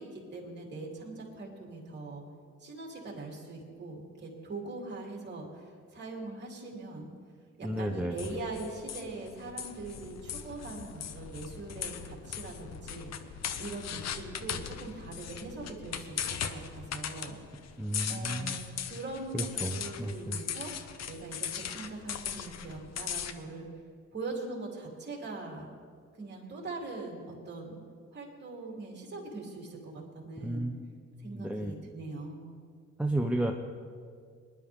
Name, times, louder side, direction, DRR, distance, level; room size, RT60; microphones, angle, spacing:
voice 1, 0.0-2.2 2.6-7.1 7.6-17.4 18.1-23.7 24.1-25.7 26.2-27.8 28.1-30.7 31.2-32.5, right 3 dB, 35° right, -1 dB, 3.4 m, -42 dB
voice 2, 7.6-8.2 17.8-18.6 19.3-20.4 30.4-31.1 31.3-31.8 33.0-33.5, right 1 dB, 5° right, 2 dB, 0.7 m, -33 dB
sound 1, 8.2-23.3, left 8 dB, 60° left, 0.9 m, -39 dB
20.0 x 11.5 x 3.6 m, 2.1 s
cardioid pair, 90°, 30 cm